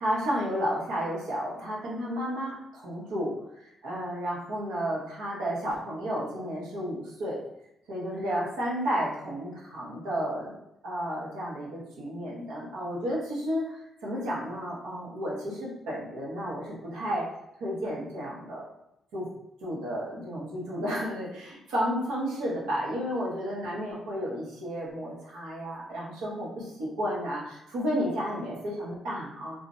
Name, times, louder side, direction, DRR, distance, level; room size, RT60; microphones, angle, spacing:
voice 1, 0.0-3.3 3.8-7.4 7.9-10.5 10.8-17.2 17.6-18.7 19.1-19.3 19.6-29.6, equal, 90° right, -5 dB, 0.9 m, -32 dB
2.4 x 2.0 x 2.5 m, 0.85 s
cardioid pair, 90°, 0 cm